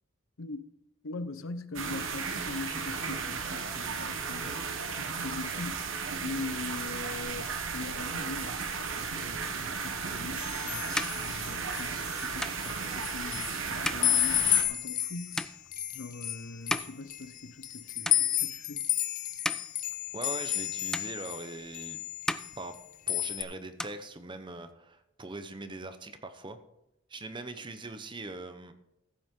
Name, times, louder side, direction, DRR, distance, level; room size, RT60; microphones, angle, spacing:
voice 1, 1.0-5.9 6.2-15.5 15.9-18.9, left 3 dB, 85° left, 0.8 m, -42 dB
sound 1, 1.8-14.6, right 5 dB, 75° right, 1.3 m, -35 dB
sound 2, 10.4-12.3 12.6-13.7 14.0-21.5 21.7-22.8 23.1-23.4, left 12 dB, 40° left, 0.7 m, -31 dB
sound 3, 10.9-17.8 18.0-18.7 19.2-20.6 20.9-21.8 22.1-23.3 23.6-24.7, left 1 dB, 5° left, 0.3 m, -39 dB
voice 2, 20.1-22.0 22.6-22.7 23.1-26.6 27.1-28.7, right 2 dB, 25° right, 0.8 m, -41 dB
15.0 x 8.4 x 3.8 m
head